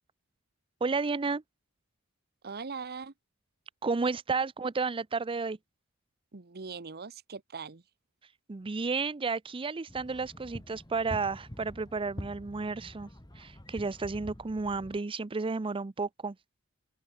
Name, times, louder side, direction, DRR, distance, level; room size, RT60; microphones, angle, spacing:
voice 1, 0.8-1.4 3.8-5.6 8.5-13.1 13.4-16.4, right 4 dB, 25° right, 0.5 m, -32 dB
voice 2, 2.4-3.1 6.3-7.8, right 5 dB, 45° right, 1.0 m, -41 dB
sound 1, 9.9-15.0, equal, 20° left, 1.8 m, -46 dB
head